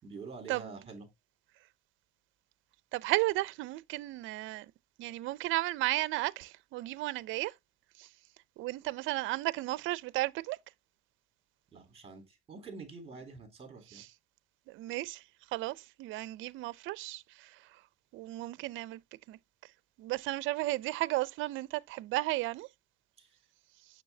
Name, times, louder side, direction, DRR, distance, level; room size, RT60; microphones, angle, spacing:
voice 1, 0.0-1.1 11.7-14.0 23.2-23.4, right 4 dB, 30° right, 3.4 m, -47 dB
voice 2, 2.9-4.7 5.0-7.5 8.0-8.1 8.6-10.6 14.0-14.1 14.7-15.2 15.5-17.8 18.1-19.0 19.3-19.4 20.0-22.7, right 19 dB, 65° right, 0.5 m, -34 dB
6.8 x 6.3 x 2.7 m
cardioid pair, 115°, 21 cm